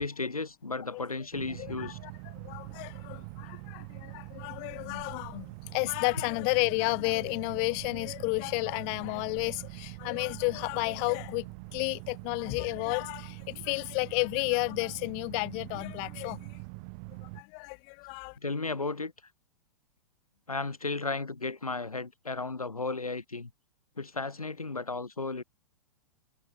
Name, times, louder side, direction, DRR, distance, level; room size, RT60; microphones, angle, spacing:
voice 1, 0.0-2.0 18.4-19.1 20.5-23.5 24.0-25.4, left 3 dB, 80° left, 3.4 m, -34 dB
sound 1, 1.3-17.4, right 35 dB, 40° right, 1.9 m, -44 dB
voice 2, 1.6-5.5 5.7-16.6 17.2-18.4, left 40 dB or more, 40° left, 4.5 m, -32 dB
figure-of-eight pair, 105°, 18 cm